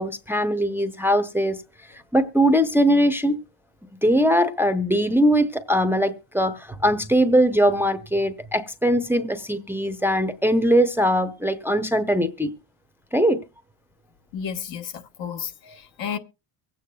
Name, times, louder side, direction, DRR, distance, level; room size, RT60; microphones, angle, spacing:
voice 1, 0.0-1.6 2.1-3.4 4.0-12.5 13.1-13.4, equal, 5° right, 0.7 m, -21 dB
voice 2, 14.3-16.2, left 7 dB, 65° left, 1.3 m, -32 dB
24.0 x 8.6 x 2.3 m
cardioid pair, 110°, 50 cm